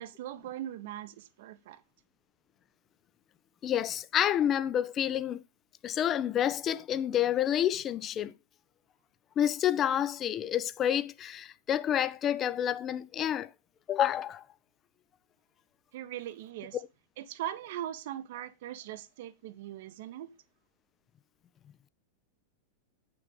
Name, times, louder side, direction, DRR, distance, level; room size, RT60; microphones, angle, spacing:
voice 1, 0.0-1.8 15.9-16.8 17.2-20.3, right 12 dB, 55° right, 0.8 m, -40 dB
voice 2, 3.6-5.4 5.8-8.3 9.4-13.5 13.9-14.4 16.7-16.9, left 10 dB, 30° left, 0.5 m, -29 dB
8.1 x 6.2 x 5.1 m
figure-of-eight pair, 90°, 0 cm